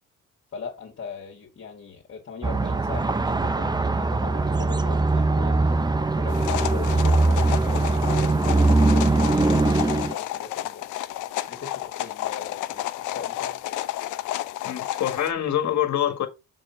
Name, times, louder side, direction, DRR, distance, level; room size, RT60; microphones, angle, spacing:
voice 1, 0.5-5.7 6.2-10.9 11.5-13.7, left 6 dB, 50° left, 2.2 m, -40 dB
sound 1, 2.4-10.1, right 3 dB, 15° right, 0.6 m, -21 dB
sound 2, 6.3-15.3, left 14 dB, 85° left, 0.7 m, -31 dB
voice 2, 14.6-16.3, left 11 dB, 65° left, 1.7 m, -25 dB
6.3 x 4.9 x 4.5 m
cardioid pair, 90°, 30 cm